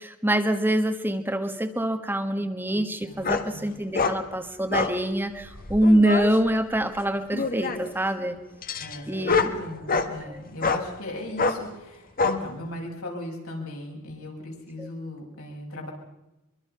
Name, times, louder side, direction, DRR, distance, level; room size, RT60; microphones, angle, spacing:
voice 1, 0.0-8.4 9.1-9.5 10.2-10.4 14.8-14.9, right 1 dB, 10° right, 7 dB, 1.3 m, -25 dB
voice 2, 2.7-3.6 8.8-15.9, left 1 dB, 75° left, -1 dB, 6.8 m, -38 dB
sound 1, 3.2-3.5 3.9-4.2 4.7-5.0 5.5-6.3 7.3-7.9 8.6-10.1 10.6-10.8 11.4-11.6 12.2-12.4, left 4 dB, 40° left, 1.5 m, -25 dB
24.0 x 23.5 x 5.6 m, 0.97 s
head